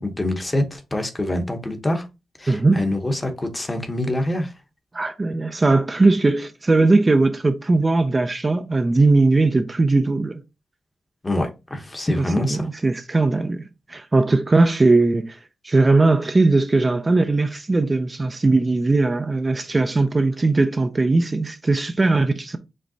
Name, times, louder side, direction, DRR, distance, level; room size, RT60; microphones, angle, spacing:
voice 1, 0.0-2.0 2.4-4.5 11.2-12.7, left 1 dB, 20° left, 0.9 m, -25 dB
voice 2, 2.5-2.8 4.9-10.4 12.2-13.6 13.9-15.4 15.6-22.6, right 3 dB, 25° right, 0.4 m, -19 dB
5.1 x 3.3 x 2.7 m
cardioid pair, 95°, 0 cm